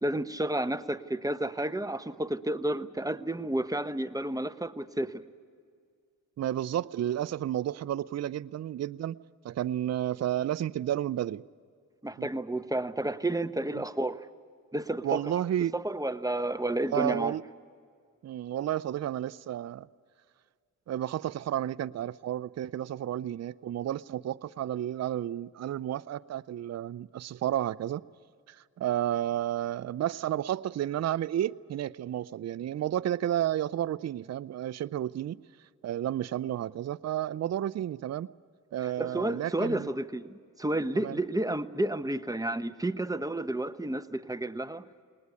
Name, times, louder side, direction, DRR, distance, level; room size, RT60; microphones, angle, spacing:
voice 1, 0.0-5.2 12.0-14.2 14.7-15.2 15.7-17.3 38.8-44.8, right 1 dB, 10° right, 10 dB, 0.9 m, -31 dB
voice 2, 6.4-9.2 9.4-11.4 12.2-12.3 13.8-13.9 15.0-15.7 16.9-17.4 18.2-19.9 20.9-28.0 28.5-35.4 35.8-38.3 38.7-39.9 41.0-41.2, right 11 dB, 50° right, 16 dB, 0.5 m, -31 dB
20.0 x 20.0 x 9.7 m, 2.1 s
cardioid pair, 70°, 33 cm